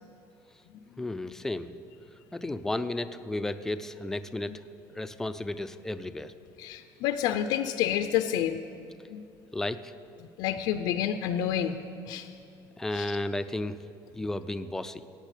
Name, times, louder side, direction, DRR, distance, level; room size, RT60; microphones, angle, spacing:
voice 1, 1.0-1.8 2.3-4.6 4.9-6.3 9.5-9.9 12.8-13.8 14.1-15.0, left 1 dB, 5° left, 11 dB, 0.4 m, -33 dB
voice 2, 6.6-8.6 9.1-9.3 10.2-11.8 12.1-12.3 12.9-13.2, left 10 dB, 70° left, 8 dB, 0.5 m, -29 dB
15.0 x 8.9 x 8.3 m, 2.6 s
cardioid pair, 175°, 8 cm